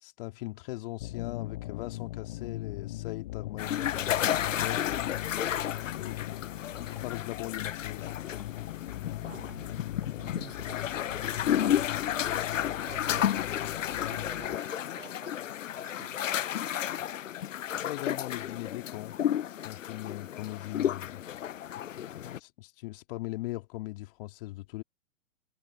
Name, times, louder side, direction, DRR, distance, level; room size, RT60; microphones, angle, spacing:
voice 1, 0.0-4.9 5.8-8.1 17.7-19.2 19.4-21.2 22.2-24.8, left 19 dB, 45° left, 2.1 m, -40 dB
sound 1, 1.0-14.6, left 16 dB, 30° left, 0.4 m, -40 dB
sound 2, 3.6-22.4, left 10 dB, 80° left, 0.6 m, -32 dB
sound 3, 6.4-17.6, left 2 dB, 5° left, 6.2 m, -62 dB
voice 2, 9.2-11.9 12.6-13.3 13.7-15.5 15.8-16.2, right 7 dB, 70° right, 4.3 m, -50 dB
hypercardioid pair, 120°, 38 cm